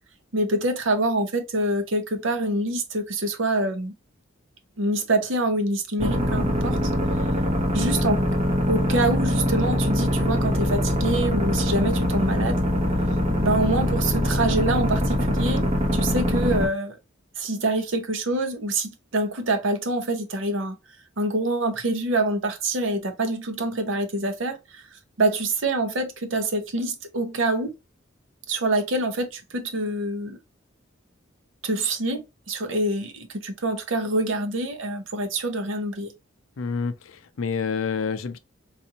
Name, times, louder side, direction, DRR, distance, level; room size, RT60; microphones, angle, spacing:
voice 1, 0.3-3.9 4.8-6.8 7.7-8.2 8.7-12.6 13.4-17.0 17.4-20.8 21.2-27.7 28.5-30.4 31.6-36.1, right 2 dB, 70° right, 0.8 m, -26 dB
sound 1, 6.0-16.7, equal, 30° right, 0.9 m, -23 dB
voice 2, 36.6-38.4, left 5 dB, 80° left, 0.5 m, -28 dB
3.9 x 2.6 x 2.8 m
head